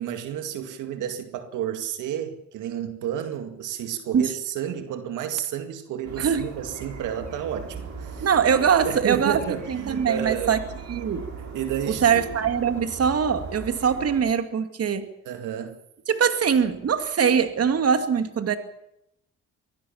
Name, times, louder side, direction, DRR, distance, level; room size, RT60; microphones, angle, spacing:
voice 1, 0.0-10.5 11.5-12.3 15.2-15.8, right 10 dB, 85° right, 2.1 m, -31 dB
sound 1, 6.0-14.2, right 5 dB, 70° right, 6.5 m, -39 dB
voice 2, 6.2-6.5 8.2-9.4 9.7-10.6 10.9-11.3 11.9-15.1 16.1-18.6, right 7 dB, 55° right, 2.4 m, -22 dB
24.5 x 17.0 x 7.3 m
cardioid pair, 90°, 30 cm